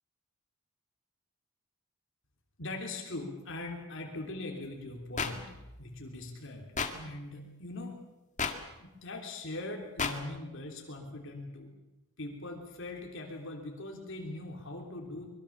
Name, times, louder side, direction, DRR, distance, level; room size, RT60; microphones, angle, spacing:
voice 1, 2.6-7.9 8.8-11.7 12.2-15.3, left 2 dB, 60° left, 2 dB, 3.2 m, -41 dB
sound 1, 5.2-5.3 6.8-6.9 8.4-8.5 10.0-10.1, left 5 dB, 35° left, 2.0 m, -30 dB
25.0 x 22.0 x 7.2 m, 1.0 s
head